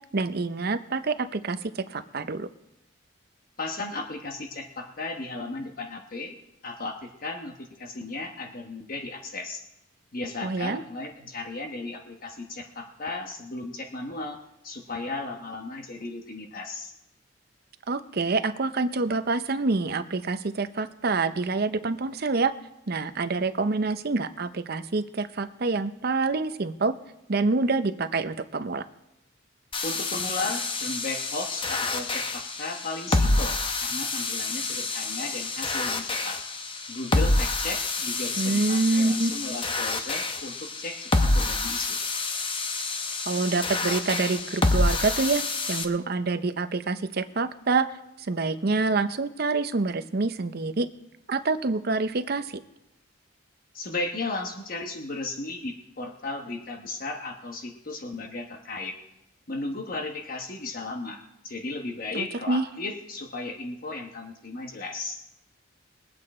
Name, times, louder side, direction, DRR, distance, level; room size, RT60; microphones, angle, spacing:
voice 1, 0.1-2.5 10.4-10.8 17.9-22.5 22.9-26.9 27.3-28.9 38.4-39.4 43.3-45.4 45.7-47.9 48.2-50.9 51.3-52.6 62.1-62.6, right 3 dB, 50° right, 11 dB, 0.6 m, -26 dB
voice 2, 3.6-6.4 6.6-9.6 10.1-14.4 14.6-16.9 29.8-36.4 36.9-42.0 53.7-59.0 59.5-65.2, left 2 dB, 45° left, 3 dB, 1.1 m, -35 dB
sound 1, 29.7-45.8, left 2 dB, 25° left, 0.8 m, -28 dB
21.0 x 8.9 x 4.3 m, 0.87 s
head